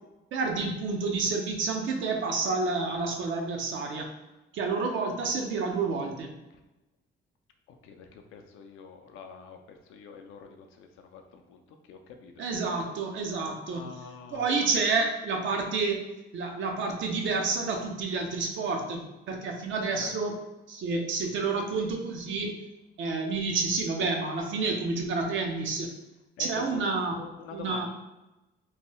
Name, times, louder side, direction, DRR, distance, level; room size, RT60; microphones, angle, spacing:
voice 1, 0.3-4.1 4.5-6.3 12.4-13.8 14.3-16.0 16.3-20.4 20.7-22.5 23.0-25.9 26.4-27.1 27.5-27.9, right 4 dB, 75° right, 2 dB, 0.6 m, -29 dB
voice 2, 7.7-12.4 13.7-14.5 20.0-20.1 26.4-27.9, left 6 dB, 90° left, 5 dB, 0.4 m, -46 dB
3.1 x 2.2 x 3.0 m, 1.0 s
cardioid pair, 90°, 20 cm